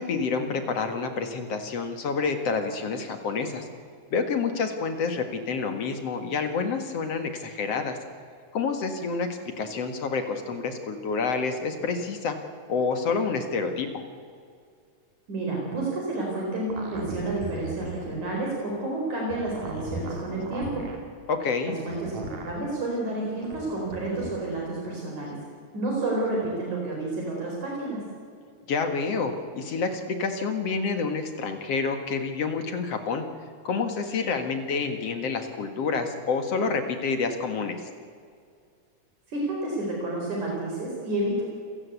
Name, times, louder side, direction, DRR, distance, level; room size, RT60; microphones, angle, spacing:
voice 1, 0.0-3.7 4.1-8.0 8.5-12.4 12.7-13.9 21.3-21.7 28.7-33.2 33.6-37.8, left 4 dB, 55° left, 7 dB, 2.6 m, -28 dB
voice 2, 15.3-20.9 21.6-25.4 25.7-28.0 39.3-41.4, right 2 dB, 70° right, -2 dB, 6.0 m, -30 dB
sound 1, 16.7-18.3 19.2-21.0 21.9-22.6 23.4-24.3, right 2 dB, 85° right, 4.6 m, -37 dB
27.5 x 17.0 x 8.3 m, 2.2 s
omnidirectional pair, 3.6 m